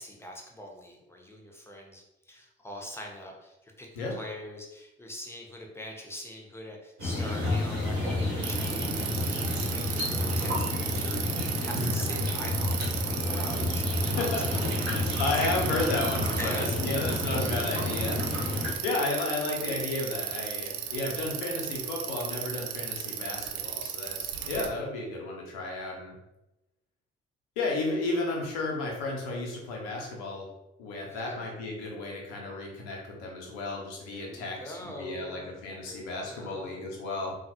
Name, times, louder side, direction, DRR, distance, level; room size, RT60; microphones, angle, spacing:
voice 1, 0.0-11.2 11.6-14.4 16.4-16.8 20.7-21.0 31.1-31.4 34.0-35.5 35.8-36.9, equal, 10° left, 1 dB, 0.8 m, -43 dB
sound 1, 7.0-18.7, left 2 dB, 85° right, 1.1 m, -30 dB
Bicycle, 8.4-24.7, right 9 dB, 60° right, 0.5 m, -35 dB
voice 2, 14.0-14.5 15.2-18.2 18.8-26.1 27.6-30.5 30.8-37.3, left 2 dB, 70° left, -1 dB, 0.8 m, -33 dB
3.8 x 2.4 x 2.9 m, 0.94 s
figure-of-eight pair, 40°, 31 cm